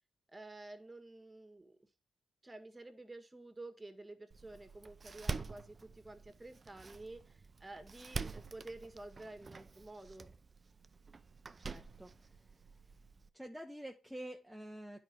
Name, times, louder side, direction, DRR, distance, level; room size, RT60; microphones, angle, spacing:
voice 1, 0.3-1.9 2.4-10.3, right 2 dB, 20° right, 1.7 m, -51 dB
Door, 4.3-13.3, right 4 dB, 40° right, 0.6 m, -47 dB
voice 2, 11.6-12.4 13.3-15.0, right 1 dB, ahead, 1.0 m, -48 dB
9.8 x 4.9 x 4.6 m
cardioid pair, 65°, 0 cm